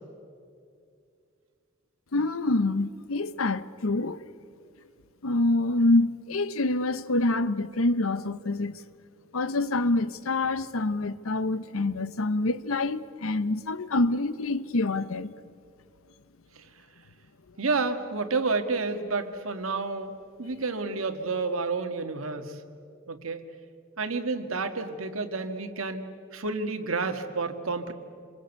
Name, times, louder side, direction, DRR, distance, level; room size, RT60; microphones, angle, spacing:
voice 1, 2.1-4.2 5.2-8.7 9.3-15.3, left 2 dB, 80° left, 0.9 m, -26 dB
voice 2, 17.6-20.1 20.4-22.6 23.1-23.4 24.0-27.9, right 3 dB, 80° right, 1.7 m, -30 dB
27.0 x 21.0 x 8.2 m
head